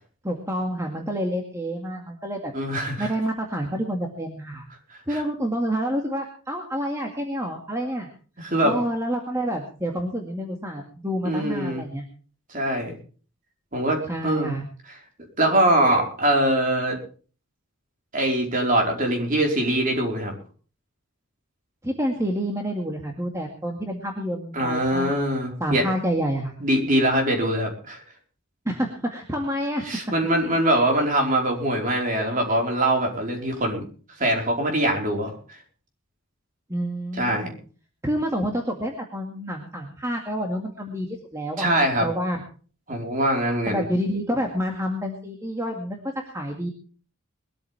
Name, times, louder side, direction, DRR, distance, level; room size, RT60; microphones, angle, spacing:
voice 1, 0.2-2.5 3.0-4.7 5.1-8.1 8.6-12.0 14.1-14.6 21.8-25.1 25.6-26.5 28.7-29.8 36.7-37.5 38.0-41.1 41.3-41.7 42.0-42.4 43.7-46.0 46.2-46.7, equal, 15° right, 1 dB, 2.1 m, -28 dB
voice 2, 2.5-3.1 5.1-5.2 8.4-8.8 11.2-11.8 12.5-12.9 13.7-14.0 14.2-14.6 15.4-17.0 18.1-20.3 24.5-25.8 26.6-28.0 29.8-33.8 34.2-35.3 37.2-37.5 41.6-42.1 42.9-43.8, right 1 dB, 35° right, 2 dB, 4.7 m, -23 dB
22.0 x 13.5 x 3.5 m, 0.40 s
head